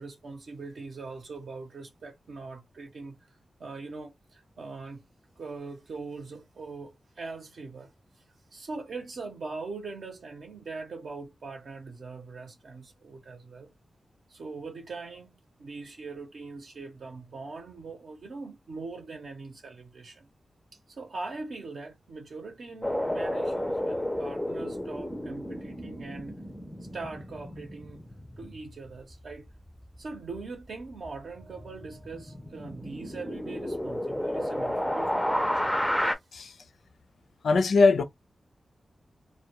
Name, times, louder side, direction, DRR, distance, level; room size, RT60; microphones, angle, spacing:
voice 1, 0.0-5.0 5.4-8.2 8.5-13.7 14.3-20.3 20.9-26.3 26.9-28.1 28.4-29.4 30.0-35.6, right 3 dB, 65° right, 0.7 m, -41 dB
sound 1, 22.8-29.9 30.3-30.4 30.8-36.1, left 1 dB, 5° left, 0.4 m, -32 dB
voice 2, 37.4-38.0, left 4 dB, 75° left, 0.5 m, -21 dB
2.2 x 2.1 x 2.9 m
wide cardioid pair, 155°, 0 cm